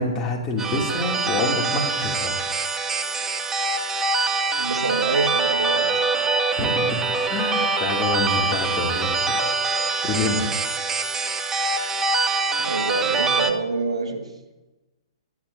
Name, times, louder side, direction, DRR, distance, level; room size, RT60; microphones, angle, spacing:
voice 1, 0.0-2.4 6.6-10.6, left 2 dB, 20° left, -1 dB, 2.8 m, -27 dB
sound 1, 0.6-13.5, right 3 dB, 15° right, 0.8 m, -24 dB
voice 2, 4.6-6.0 12.6-14.3, right 4 dB, 80° right, 3 dB, 1.9 m, -26 dB
24.5 x 11.0 x 2.8 m, 1.1 s
figure-of-eight pair, 120°, 3 cm